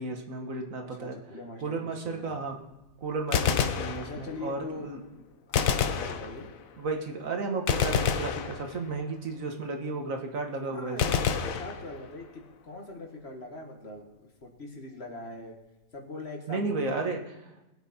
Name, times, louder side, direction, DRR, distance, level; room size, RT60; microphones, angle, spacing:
voice 1, 0.0-1.2 1.6-2.6 3.0-5.0 6.8-11.2 16.5-17.2, right 3 dB, 70° right, 4 dB, 1.8 m, -33 dB
voice 2, 0.8-2.4 4.0-6.5 10.7-14.1 14.4-15.6 15.9-17.0, left 2 dB, 50° left, 2 dB, 1.9 m, -42 dB
Gunshot gunfire, 3.2-4.5 5.5-6.8 7.7-9.1 11.0-12.3, left 7 dB, 75° left, 1.2 m, -28 dB
20.5 x 8.4 x 4.2 m, 1.0 s
omnidirectional pair, 1.4 m